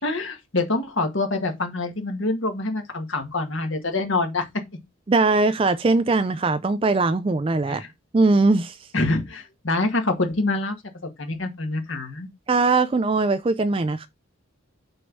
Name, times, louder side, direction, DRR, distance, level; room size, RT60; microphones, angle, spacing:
voice 1, 0.0-4.4 7.7-7.9 8.9-10.8 11.0-12.3, left 2 dB, 65° left, 1.8 m, -26 dB
voice 2, 5.1-7.8 8.1-8.8 12.5-14.1, right 3 dB, 25° right, 0.3 m, -20 dB
6.2 x 4.6 x 5.3 m
head